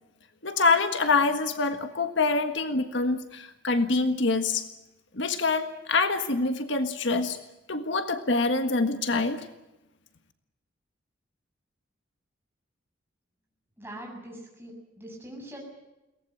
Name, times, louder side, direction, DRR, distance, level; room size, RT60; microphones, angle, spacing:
voice 1, 0.4-4.7 5.1-7.4 7.7-9.5, left 3 dB, 60° left, 8 dB, 1.6 m, -25 dB
voice 2, 13.8-14.7 15.0-15.6, right 1 dB, 10° right, 0 dB, 7.5 m, -42 dB
22.5 x 19.0 x 9.0 m, 1.0 s
head